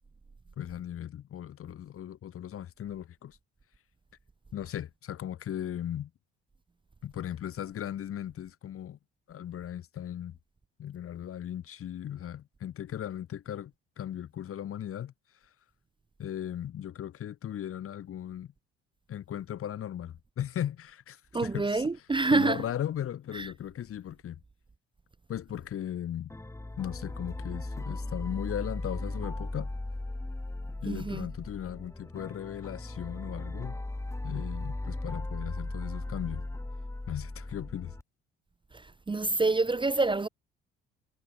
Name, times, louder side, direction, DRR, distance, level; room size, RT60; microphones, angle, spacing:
voice 1, 0.6-3.4 4.5-6.1 7.0-9.0 9.3-10.4 10.8-15.1 16.2-18.5 19.1-21.8 22.3-24.4 25.3-26.3 26.8-29.7 30.8-33.8 34.2-36.5 37.1-37.9, left 10 dB, 45° left, 1.0 m, -37 dB
voice 2, 21.3-22.6 23.3-23.5 30.9-31.3 38.7-40.3, right 3 dB, 15° right, 0.7 m, -27 dB
sound 1, 26.3-38.0, left 2 dB, 10° left, 1.3 m, -37 dB
hypercardioid pair, 60°, 31 cm